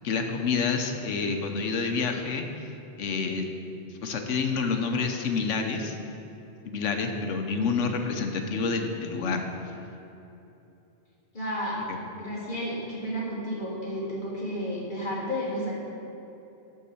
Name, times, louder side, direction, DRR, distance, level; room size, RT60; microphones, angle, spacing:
voice 1, 0.0-2.7 3.0-3.5 3.9-5.9 6.6-9.7 11.9-12.0, left 4 dB, 90° left, 4 dB, 1.1 m, -28 dB
voice 2, 11.3-11.7 12.2-15.7, equal, 45° left, -6 dB, 1.8 m, -32 dB
11.0 x 3.7 x 7.0 m, 2.9 s
omnidirectional pair, 1.2 m